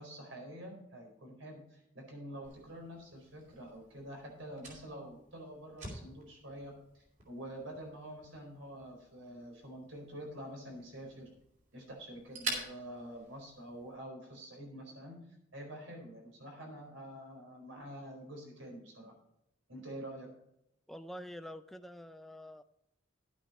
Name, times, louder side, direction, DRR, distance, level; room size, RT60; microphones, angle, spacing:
voice 1, 0.0-11.3 11.7-15.2 15.5-19.1 19.7-20.3, right 1 dB, 85° right, 1 dB, 4.4 m, -47 dB
Fire, 2.4-14.0, right 3 dB, 40° right, 3.8 m, -48 dB
voice 2, 20.9-22.6, equal, ahead, 9 dB, 0.4 m, -46 dB
11.5 x 9.0 x 4.2 m, 0.80 s
head